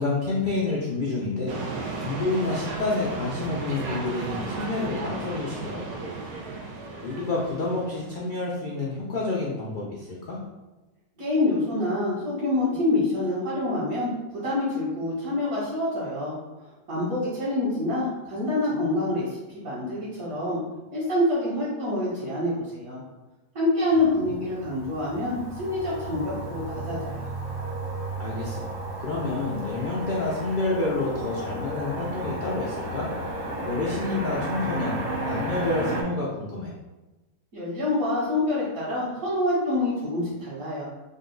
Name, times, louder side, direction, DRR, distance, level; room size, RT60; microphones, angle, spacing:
voice 1, 0.0-1.6 2.0-6.2 7.0-10.4 24.2-24.3 28.2-28.7 29.0-33.1 33.6-35.0 35.2-36.7, left 3 dB, 80° left, -4 dB, 0.4 m, -29 dB
sound 1, 1.5-8.5, right 3 dB, 85° right, 1.2 m, -35 dB
voice 2, 11.2-16.3 16.9-20.6 20.9-23.0 23.5-27.3 37.5-40.8, left 2 dB, 65° right, -13 dB, 1.7 m, -26 dB
Motor vehicle (road), 24.1-36.0, right 1 dB, 45° right, 0.7 m, -33 dB
3.9 x 2.2 x 3.8 m, 1.1 s
omnidirectional pair, 1.6 m